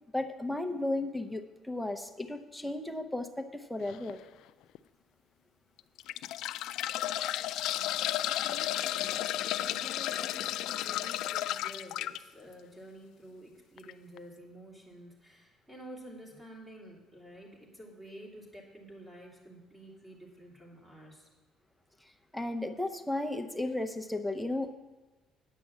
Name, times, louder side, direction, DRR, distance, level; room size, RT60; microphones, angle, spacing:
voice 1, 0.1-4.2 22.3-24.7, left 2 dB, 5° left, 5 dB, 0.7 m, -34 dB
sound 1, 3.9-4.1 4.7-4.8 5.8-12.2 13.8-13.9 14.2-14.3, left 13 dB, 75° left, 0.3 m, -33 dB
voice 2, 7.6-7.9 8.3-9.2 9.6-21.3, equal, 15° right, -2 dB, 2.6 m, -50 dB
9.7 x 6.1 x 7.4 m, 1.2 s
cardioid pair, 125°, 0 cm